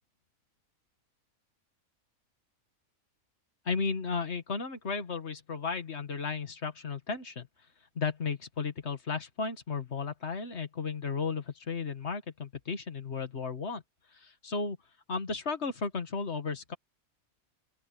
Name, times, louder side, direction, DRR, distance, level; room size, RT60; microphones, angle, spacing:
voice 1, 3.7-7.5 8.0-13.8 14.1-14.8 15.1-16.7, left 5 dB, 50° left, 2.0 m, -34 dB
open air
omnidirectional pair, 1.5 m